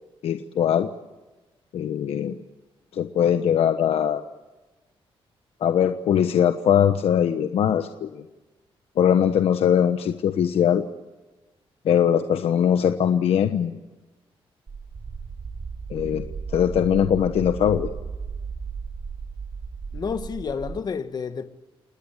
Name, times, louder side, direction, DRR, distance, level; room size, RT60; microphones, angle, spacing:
voice 1, 0.2-0.9 1.7-2.4 2.9-4.2 5.6-8.2 9.0-10.8 11.8-13.8 15.9-16.2 16.5-17.9, left 9 dB, 80° left, 1.2 m, -21 dB
sound 1, 14.7-20.8, right 5 dB, 40° right, 1.5 m, -35 dB
voice 2, 19.9-21.5, left 5 dB, 45° left, 1.6 m, -30 dB
28.5 x 19.5 x 8.3 m
wide cardioid pair, 145°, 10 cm